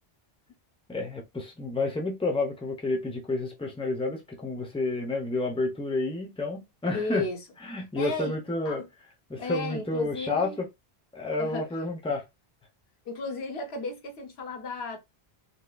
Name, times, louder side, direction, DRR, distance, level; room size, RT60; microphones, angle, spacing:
voice 1, 0.9-7.2 7.7-8.8 9.3-10.7 11.1-12.2, left 2 dB, 5° left, 0.7 m, -30 dB
voice 2, 6.9-7.4 8.0-8.9 9.4-10.6 11.4-11.7 13.1-15.0, left 3 dB, 90° left, 1.1 m, -34 dB
3.6 x 2.8 x 2.3 m
omnidirectional pair, 1.0 m